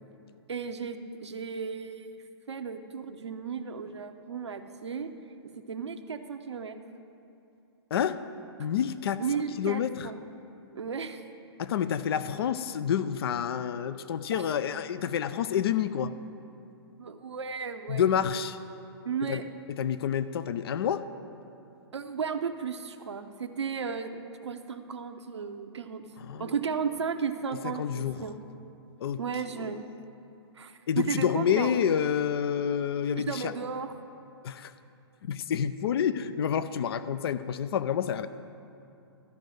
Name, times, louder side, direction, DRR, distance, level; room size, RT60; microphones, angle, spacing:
voice 1, 0.5-2.2 2.5-5.1 5.7-6.8 9.2-10.2 10.7-11.2 14.3-14.5 17.0-18.1 19.0-19.4 19.8-19.9 21.9-26.1 26.4-28.3 29.2-29.9 30.5-31.8 33.2-33.9, right 6 dB, 85° right, 6 dB, 0.7 m, -34 dB
voice 2, 8.6-9.2 9.6-10.1 11.6-16.1 17.9-18.6 19.3-19.4 19.7-21.0 26.3-26.5 27.8-28.2 29.0-29.2 29.6-29.7 30.9-33.5 34.4-34.7 35.2-38.3, left 8 dB, 60° left, 13 dB, 0.5 m, -28 dB
13.0 x 5.3 x 7.6 m, 2.7 s
hypercardioid pair, 125°, 14 cm